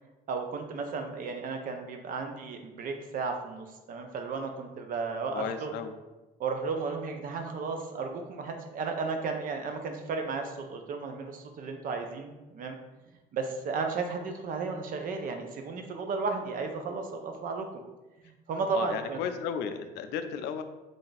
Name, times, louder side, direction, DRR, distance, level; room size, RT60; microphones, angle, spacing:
voice 1, 0.3-5.7 6.4-12.8 13.3-17.8 18.2-19.2, right 4 dB, 55° right, 5 dB, 0.6 m, -34 dB
voice 2, 5.3-5.9 18.7-20.6, left 7 dB, 85° left, 9 dB, 0.4 m, -34 dB
3.4 x 2.5 x 3.9 m, 1.1 s
cardioid pair, 110°, 17 cm